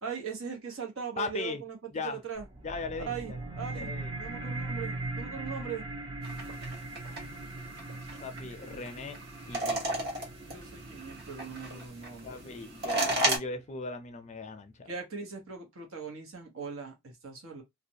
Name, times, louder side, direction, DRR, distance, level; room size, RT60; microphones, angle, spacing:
voice 1, 0.0-1.8 2.0-2.5 3.0-3.9 4.2-5.9 7.0-7.5 10.5-12.4 14.9-17.6, right 6 dB, 75° right, 1.0 m, -40 dB
voice 2, 1.2-1.6 1.9-2.2 2.6-3.4 3.8-4.1 8.2-9.2 9.5-10.0 12.2-14.9, left 3 dB, 35° left, 0.4 m, -38 dB
sound 1, 2.3-13.3, right 2 dB, 25° right, 0.5 m, -40 dB
sound 2, 6.2-13.4, right 1 dB, 50° right, 1.1 m, -35 dB
2.5 x 2.1 x 2.7 m
head